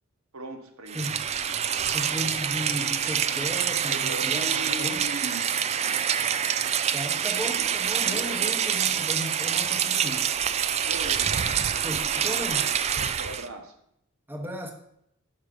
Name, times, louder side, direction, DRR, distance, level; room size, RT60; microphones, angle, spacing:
voice 1, 0.3-1.1 3.9-6.1 7.4-7.8 8.0-8.5 10.9-11.7 13.0-13.8, right 1 dB, 75° right, 4 dB, 1.1 m, -39 dB
Rain, 0.9-13.5, right 8 dB, 30° right, 0.3 m, -26 dB
voice 2, 1.9-5.0 6.9-10.4 11.8-12.7 14.3-14.7, equal, 10° right, 2 dB, 0.9 m, -35 dB
6.4 x 5.9 x 5.0 m, 0.74 s
head